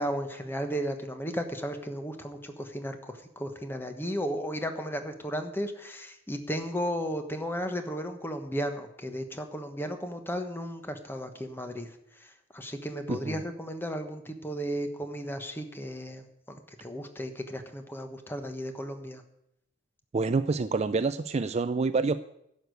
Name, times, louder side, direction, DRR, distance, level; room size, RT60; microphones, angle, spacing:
voice 1, 0.0-19.2, equal, 10° left, 6 dB, 1.2 m, -35 dB
voice 2, 13.1-13.4 20.1-22.2, right 4 dB, 35° right, 12 dB, 0.4 m, -27 dB
11.5 x 6.6 x 9.4 m, 0.78 s
head